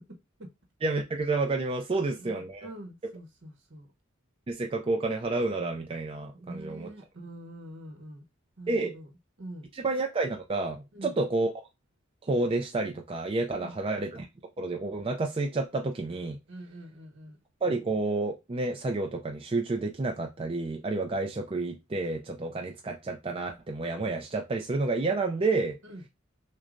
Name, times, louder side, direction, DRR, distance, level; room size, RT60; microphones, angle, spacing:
voice 1, 0.8-2.7 4.5-6.9 8.7-8.9 9.8-11.5 12.2-14.3 14.6-16.4 17.6-25.8, right 3 dB, 25° right, 0.4 m, -30 dB
voice 2, 1.9-3.9 6.3-8.2 8.6-9.1 9.4-9.7 10.9-11.1 13.5-13.7 16.5-17.4 25.8-26.1, right 1 dB, 60° right, 1.0 m, -45 dB
6.2 x 2.2 x 2.5 m
head